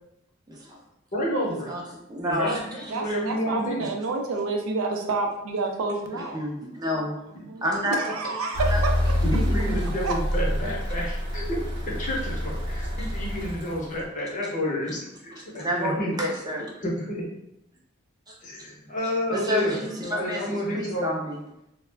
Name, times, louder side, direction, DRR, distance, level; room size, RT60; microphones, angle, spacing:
voice 1, 0.5-0.8 1.7-1.8 2.1-3.1 6.1-7.2 7.6-8.4 8.7-8.8 9.3-9.8 13.0-13.1 15.3-16.7 18.3-18.4 19.3-20.4 20.7-21.4, equal, 20° right, -2 dB, 0.5 m, -30 dB
voice 2, 1.1-1.7 2.2-3.8 9.2-16.1 16.8-17.3 18.4-21.2, equal, 40° left, -3 dB, 0.7 m, -30 dB
voice 3, 2.9-6.4 6.8-7.0 7.5-7.6 8.0-8.9 10.0-10.1, right 3 dB, 85° right, 3 dB, 0.4 m, -29 dB
sound 1, 8.5-14.1, left 1 dB, 55° right, 0.8 m, -27 dB
2.3 x 2.1 x 3.2 m, 0.83 s
head